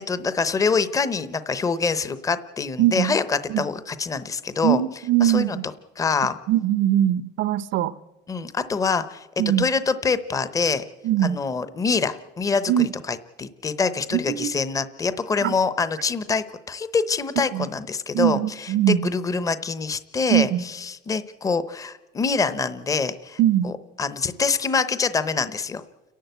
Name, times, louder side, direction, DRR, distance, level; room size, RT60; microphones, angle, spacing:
voice 1, 0.0-4.8 5.2-5.6 6.0-6.4 8.3-9.3 9.6-10.8 11.2-23.4 23.6-23.7 24.0-25.8, left 5 dB, 15° left, 13 dB, 0.7 m, -25 dB
voice 2, 2.8-3.2 3.5-3.6 4.6-5.6 6.5-7.9 9.4-9.6 11.0-11.4 12.7-12.9 14.1-14.6 15.4-15.5 17.5-17.7 18.1-19.1 20.3-20.6 23.4-23.7, right 12 dB, 80° right, 16 dB, 0.8 m, -21 dB
29.5 x 11.0 x 8.0 m, 1.1 s
cardioid pair, 180°, 19 cm